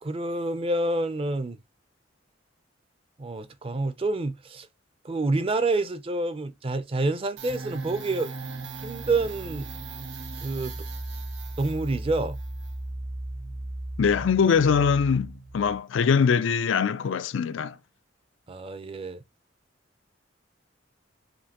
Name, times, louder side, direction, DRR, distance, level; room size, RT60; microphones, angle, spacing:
voice 1, 0.0-1.6 3.2-4.7 5.0-8.3 8.8-9.7 10.4-10.8 11.6-12.4 18.5-19.2, right 2 dB, 30° right, 0.5 m, -28 dB
sound 1, 7.4-15.8, right 2 dB, 75° right, 1.1 m, -37 dB
voice 2, 14.0-17.8, left 6 dB, 85° left, 0.4 m, -22 dB
5.2 x 2.6 x 2.9 m
head